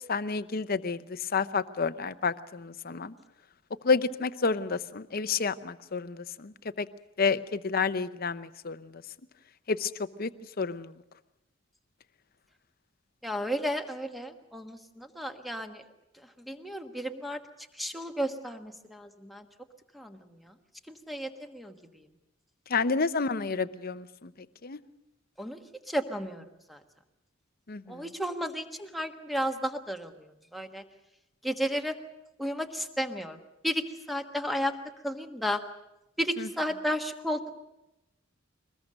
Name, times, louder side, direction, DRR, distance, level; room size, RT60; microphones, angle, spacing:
voice 1, 0.1-3.1 3.8-6.9 7.2-8.9 9.7-9.9 10.2-10.3 10.6-10.9 22.7-24.3 24.6-24.8 27.7-28.0 36.4-36.5, left 4 dB, 50° left, 13 dB, 0.7 m, -30 dB
voice 2, 13.2-15.8 16.5-17.4 17.8-19.4 19.9-20.2 20.9-22.0 25.4-25.6 25.9-26.4 26.7-26.8 27.9-30.8 31.4-32.0 32.4-33.4 33.6-34.7 35.0-35.6 36.2-37.6, equal, ahead, 5 dB, 1.3 m, -33 dB
23.0 x 20.5 x 6.5 m, 0.92 s
head